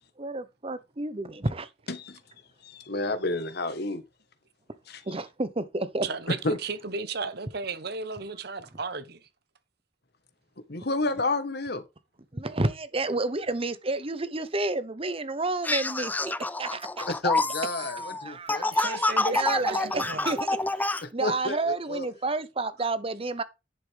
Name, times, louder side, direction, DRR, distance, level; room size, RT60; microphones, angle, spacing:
voice 1, 0.2-1.7 5.0-6.1 12.3-17.1 17.8-20.6 20.9-23.4, right 2 dB, 30° right, 1.0 m, -31 dB
voice 2, 1.9-2.2 2.6-4.0 4.9-5.0 6.4-6.6 10.7-11.8 17.1-18.8 21.0-22.0, left 2 dB, 60° left, 1.5 m, -30 dB
voice 3, 6.0-9.2 18.8-20.3, right 4 dB, 60° right, 1.2 m, -34 dB
sound 1, 15.6-21.0, left 2 dB, 10° left, 0.4 m, -28 dB
10.5 x 7.8 x 3.5 m
head